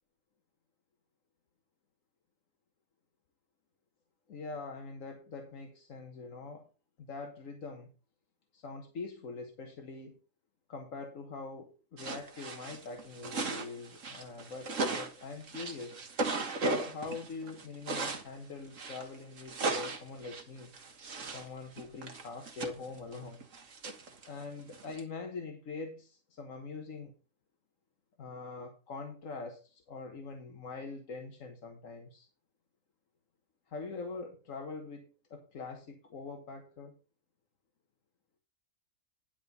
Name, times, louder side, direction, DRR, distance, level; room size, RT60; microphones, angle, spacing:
voice 1, 4.3-6.7 7.0-7.9 8.5-10.2 10.7-16.0 16.6-20.7 21.2-23.4 24.2-27.1 28.2-32.3 33.7-37.0, left 4 dB, 85° left, 1.7 m, -43 dB
sound 1, 12.0-18.3 18.7-21.5 21.8-25.0, right 3 dB, 75° right, 1.8 m, -37 dB
10.0 x 5.1 x 5.3 m
omnidirectional pair, 1.3 m